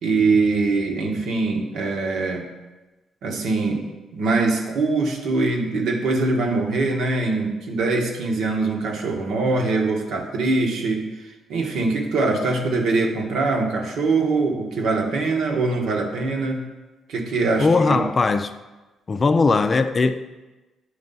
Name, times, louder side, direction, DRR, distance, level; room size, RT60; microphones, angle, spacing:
voice 1, 0.0-2.5 3.2-16.6 17.1-18.1, right 3 dB, 75° right, 1 dB, 1.2 m, -23 dB
voice 2, 17.6-18.5 19.1-20.2, left 4 dB, 35° left, 10 dB, 0.4 m, -19 dB
9.7 x 3.2 x 5.4 m, 1.1 s
cardioid pair, 90°, 0 cm